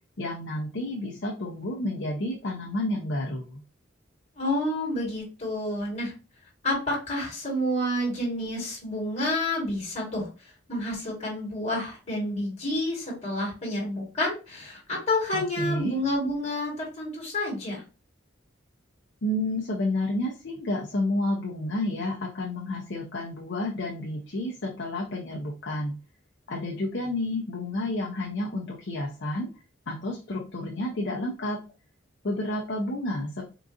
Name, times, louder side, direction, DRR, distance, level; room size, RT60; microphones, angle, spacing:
voice 1, 0.2-3.6 15.3-16.0 19.2-26.0 26.5-29.5 29.9-31.6 32.2-33.4, left 1 dB, 60° left, -1 dB, 0.6 m, -30 dB
voice 2, 4.4-6.1 6.6-10.3 10.7-17.8, left 1 dB, 35° left, -2 dB, 1.4 m, -29 dB
3.8 x 2.4 x 2.5 m, 0.32 s
head